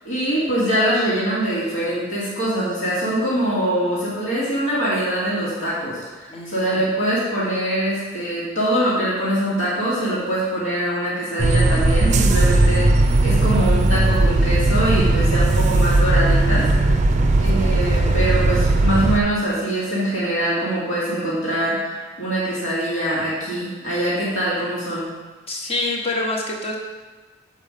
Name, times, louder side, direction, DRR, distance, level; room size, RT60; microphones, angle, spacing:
voice 1, 0.0-16.7 17.4-25.1, right 1 dB, 80° left, -9 dB, 2.3 m, -23 dB
voice 2, 6.3-6.8 25.5-26.7, left 2 dB, 30° left, 0 dB, 1.1 m, -26 dB
sound 1, 11.4-19.2, right 2 dB, 35° right, 0.5 m, -17 dB
7.1 x 5.2 x 5.0 m, 1.3 s
head